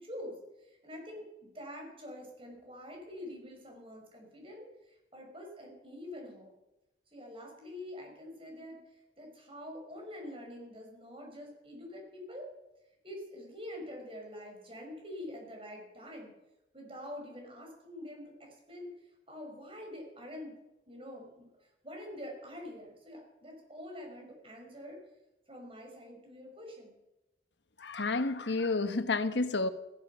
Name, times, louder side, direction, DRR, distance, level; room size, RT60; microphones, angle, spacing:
voice 1, 0.0-6.5 7.1-12.5 13.0-16.3 16.7-20.6 20.9-25.0 25.5-26.9, left 1 dB, 30° right, 5.6 m, -46 dB
voice 2, 27.8-29.7, left 3 dB, 85° left, 1.2 m, -30 dB
15.5 x 15.0 x 5.9 m
head